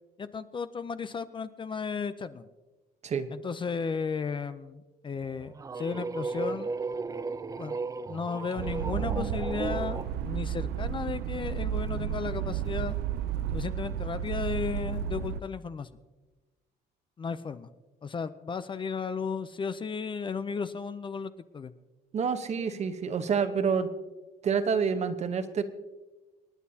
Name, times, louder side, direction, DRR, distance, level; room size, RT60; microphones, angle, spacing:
voice 1, 0.2-2.5 3.3-6.7 7.6-7.8 8.1-13.0 13.5-15.9 17.2-17.7 18.0-21.7, left 5 dB, 30° left, 12 dB, 0.5 m, -34 dB
sound 1, 5.2-10.1, right 4 dB, 20° right, 0.5 m, -35 dB
sound 2, 8.6-15.4, right 9 dB, 75° right, 0.6 m, -32 dB
voice 2, 22.1-23.9 24.4-25.6, right 6 dB, 40° right, 9 dB, 1.0 m, -28 dB
27.0 x 9.5 x 2.8 m, 1.2 s
cardioid pair, 110°, 17 cm